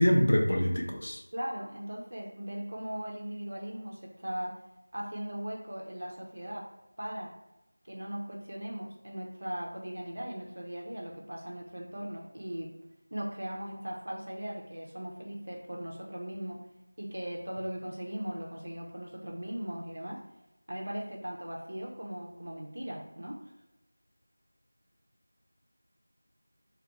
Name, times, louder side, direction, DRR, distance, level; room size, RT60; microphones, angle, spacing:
voice 1, 0.0-1.2, equal, 30° left, 2 dB, 0.3 m, -25 dB
voice 2, 1.3-4.6 4.9-6.7 7.0-7.3 7.8-12.8 13.1-16.6 17.0-20.2 20.7-23.4, equal, 45° right, -1 dB, 0.4 m, -38 dB
2.2 x 2.1 x 2.8 m, 0.94 s
figure-of-eight pair, 180°, 0 cm